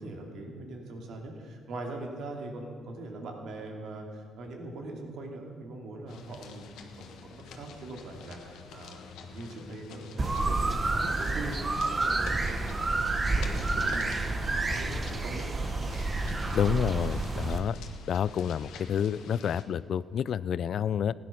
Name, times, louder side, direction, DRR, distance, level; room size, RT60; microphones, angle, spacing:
voice 1, 0.0-14.3 14.6-15.9, right 2 dB, 75° right, 2 dB, 2.5 m, -42 dB
sound 1, 6.1-19.6, left 5 dB, 85° left, 1.3 m, -48 dB
sound 2, 10.2-17.6, right 2 dB, 30° right, 1.2 m, -29 dB
voice 2, 16.5-17.8 18.1-21.1, left 8 dB, 65° left, 19 dB, 0.3 m, -29 dB
16.0 x 10.5 x 5.9 m, 2.4 s
cardioid pair, 90°, 0 cm